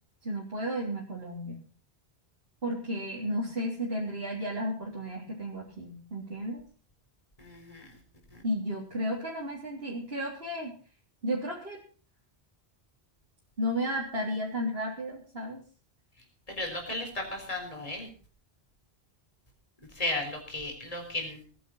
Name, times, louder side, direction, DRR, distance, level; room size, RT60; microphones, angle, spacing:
voice 1, 0.2-1.6 2.6-6.6 8.4-10.7 11.2-11.8 13.6-15.6, equal, 65° right, -4 dB, 4.0 m, -33 dB
voice 2, 7.4-7.8 16.5-18.1 20.0-21.4, left 2 dB, 35° left, 3 dB, 4.4 m, -34 dB
19.0 x 11.0 x 5.7 m, 0.39 s
omnidirectional pair, 1.1 m